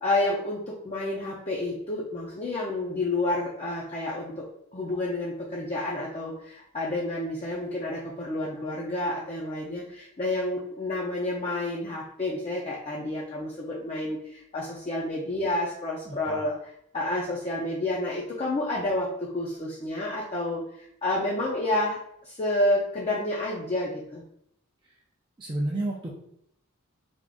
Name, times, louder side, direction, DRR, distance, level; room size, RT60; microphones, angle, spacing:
voice 1, 0.0-4.4 4.7-24.2, left 2 dB, 30° left, -5 dB, 0.5 m, -30 dB
voice 2, 16.1-16.4 25.4-26.1, right 1 dB, 20° right, -3 dB, 0.4 m, -31 dB
3.5 x 2.4 x 3.7 m, 0.74 s
head